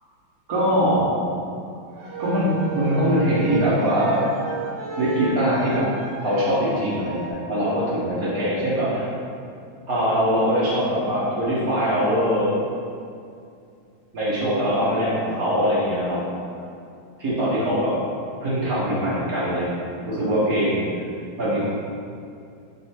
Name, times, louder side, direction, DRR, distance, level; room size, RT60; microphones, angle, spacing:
voice 1, 0.5-1.1 2.2-4.2 5.0-5.9 6.2-9.1 9.9-12.5 14.1-16.2 17.2-18.0 18.4-20.9 21.4-21.7, equal, 50° right, -8 dB, 1.7 m, -22 dB
sound 1, 1.9-7.3, right 4 dB, 65° right, 0.6 m, -33 dB
5.3 x 4.0 x 4.3 m, 2.5 s
omnidirectional pair, 2.2 m